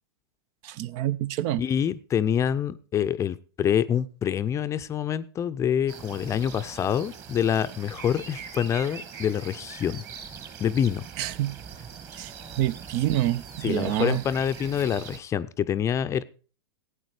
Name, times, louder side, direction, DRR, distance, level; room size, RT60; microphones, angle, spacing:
voice 1, 0.6-1.6 11.2-11.5 12.1-14.2, right 14 dB, 45° right, 0.6 m, -27 dB
voice 2, 1.6-10.0 10.6-11.0 12.4-12.6 13.6-16.2, left 9 dB, 25° left, 0.6 m, -26 dB
sound 1, 5.9-15.2, right 6 dB, 30° right, 1.6 m, -42 dB
16.0 x 8.8 x 4.9 m
hypercardioid pair, 125°, 13 cm